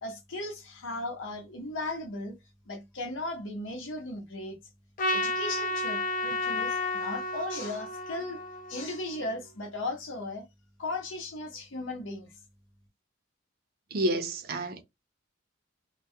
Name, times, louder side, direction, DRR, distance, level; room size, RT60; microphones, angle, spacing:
voice 1, 0.0-2.4 2.7-4.6 5.1-8.4 8.7-10.5 10.8-12.3, left 2 dB, 90° left, 0.8 m, -36 dB
Trumpet, 5.0-9.4, left 2 dB, 45° left, 0.5 m, -32 dB
voice 2, 13.9-14.8, right 1 dB, 50° right, 0.5 m, -29 dB
2.2 x 2.1 x 2.6 m
head